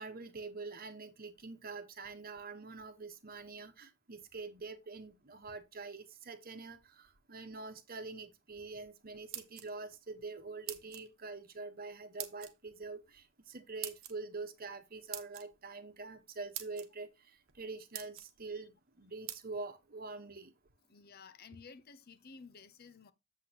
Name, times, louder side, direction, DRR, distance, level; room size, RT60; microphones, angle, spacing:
voice 1, 0.0-20.5, right 3 dB, 45° right, 1.1 m, -45 dB
sound 1, 9.1-9.9 10.7-11.1 12.2-12.5 13.8-14.1 15.1-15.4 16.2-16.3 16.5-16.9 17.5-17.6 17.9-18.3 19.3-19.4, right 12 dB, 80° right, 1.1 m, -43 dB
voice 2, 20.9-23.1, left 5 dB, 50° left, 0.7 m, -54 dB
8.0 x 7.5 x 2.9 m
head